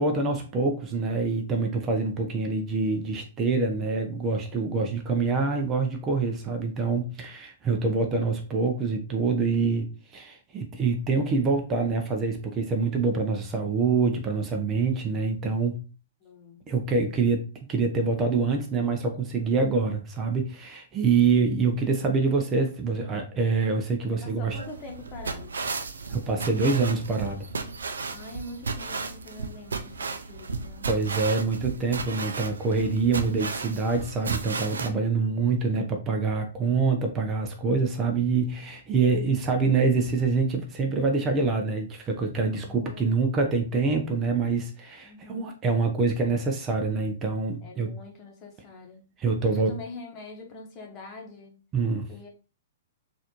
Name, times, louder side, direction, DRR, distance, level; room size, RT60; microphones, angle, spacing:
voice 1, 0.0-15.8 16.7-24.6 26.1-27.5 30.9-47.9 49.2-49.8 51.7-52.0, right 4 dB, 25° right, 3 dB, 0.6 m, -25 dB
voice 2, 16.2-16.6 24.2-25.6 28.1-30.9 35.1-35.9 42.6-43.2 45.0-45.5 47.6-49.0 49.4-51.5 52.1-52.3, left 3 dB, 30° left, 2 dB, 1.1 m, -44 dB
sound 1, 24.5-34.9, right 4 dB, 75° right, 0.4 m, -34 dB
4.1 x 2.6 x 2.9 m, 0.34 s
figure-of-eight pair, 115°, 0 cm